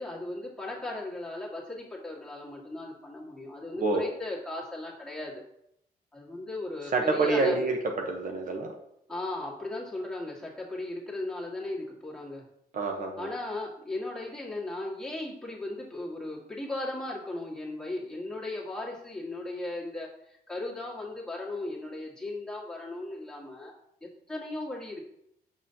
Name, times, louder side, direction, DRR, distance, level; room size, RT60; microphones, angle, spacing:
voice 1, 0.0-5.4 6.1-7.7 9.1-12.4 13.2-23.7 24.0-25.0, left 2 dB, 5° left, -5 dB, 1.9 m, -37 dB
voice 2, 6.9-7.8 8.1-8.7 12.7-13.3, right 3 dB, 55° right, 2 dB, 1.0 m, -27 dB
6.8 x 5.4 x 2.8 m, 0.76 s
cardioid pair, 95°, 17 cm